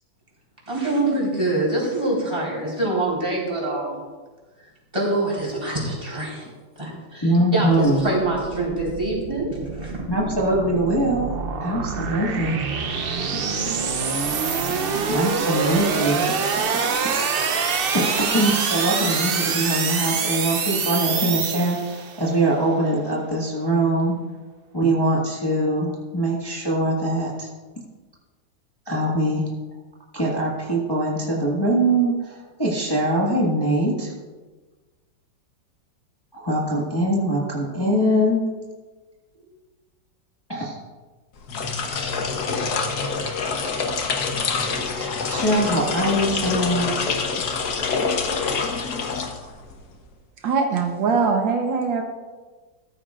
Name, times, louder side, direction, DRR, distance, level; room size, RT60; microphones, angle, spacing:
voice 1, 0.7-4.0 4.6-6.5 6.8-10.0, right 2 dB, 15° right, -5 dB, 4.4 m, -25 dB
voice 2, 7.2-8.0 10.0-11.3 11.6-12.6 15.1-16.2 17.0-17.2 17.9-24.2 24.7-27.5 28.9-29.5 30.1-34.1 36.3-38.5 40.5-40.8 44.6-47.1, right 1 dB, 15° left, -5 dB, 1.6 m, -22 dB
sound 1, 8.1-22.2, right 5 dB, 60° right, 0.6 m, -26 dB
sound 2, 41.4-49.8, left 5 dB, 60° left, 1.5 m, -26 dB
voice 3, 50.4-52.0, right 5 dB, 80° right, 3 dB, 1.8 m, -22 dB
14.0 x 13.5 x 2.5 m, 1.3 s
omnidirectional pair, 2.0 m